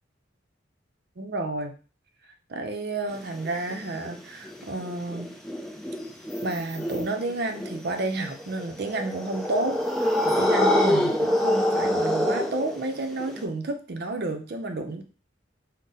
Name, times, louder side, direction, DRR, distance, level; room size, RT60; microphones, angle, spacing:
voice 1, 1.2-1.7 2.5-5.3 6.4-15.0, right 2 dB, 55° right, 5 dB, 0.6 m, -31 dB
sound 1, 3.1-13.4, left 1 dB, ahead, 0.4 m, -26 dB
3.9 x 2.1 x 4.0 m, 0.35 s
head